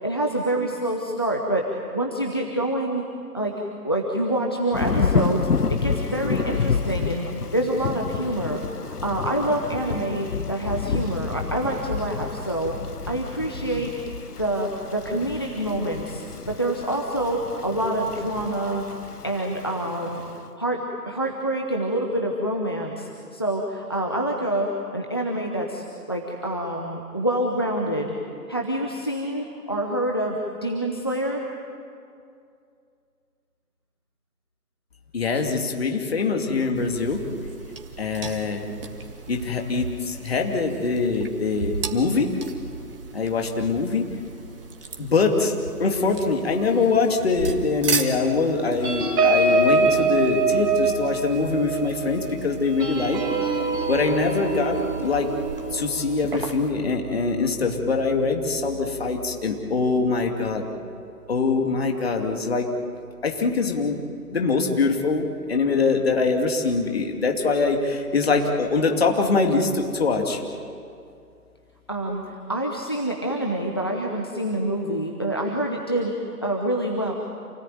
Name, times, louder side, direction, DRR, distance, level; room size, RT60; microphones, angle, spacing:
voice 1, 0.0-1.7 1.9-3.0 3.3-3.5 3.8-7.3 7.5-12.8 13.1-13.9 14.4-18.8 19.2-28.1 28.5-31.4 71.9-77.1, right 1 dB, 15° left, 0 dB, 0.8 m, -27 dB
Thunder / Rain, 4.7-20.3, left 5 dB, 75° left, 1.1 m, -29 dB
voice 2, 35.1-37.2 38.0-38.7 39.3-42.3 43.1-44.1 45.0-45.5 45.8-53.2 53.9-55.3 55.7-60.7 61.3-62.7 63.2-64.0 64.3-70.4, left 4 dB, 40° left, 2 dB, 2.7 m, -23 dB
sound 1, 36.7-56.7, right 4 dB, 35° right, 1.9 m, -36 dB
sound 2, 48.8-57.8 58.2-58.4 58.7-59.0, right 3 dB, 10° right, 4.0 m, -25 dB
28.0 x 18.5 x 9.3 m, 2.4 s
figure-of-eight pair, 160°, 47 cm